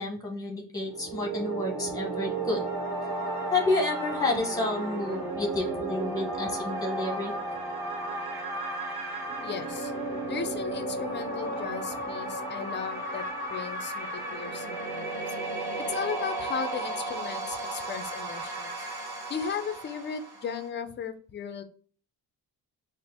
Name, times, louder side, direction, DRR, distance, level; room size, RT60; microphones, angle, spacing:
voice 1, 0.0-2.6 3.5-7.3, left 2 dB, 10° left, 2 dB, 0.8 m, -30 dB
sound 1, 0.8-20.7, right 2 dB, 70° right, 1.4 m, -34 dB
voice 2, 9.4-9.9 10.3-13.2 13.5-15.4 15.9-18.9 19.3-21.6, left 6 dB, 30° left, 9 dB, 0.4 m, -36 dB
4.1 x 2.5 x 3.4 m, 0.42 s
cardioid pair, 180°, 39 cm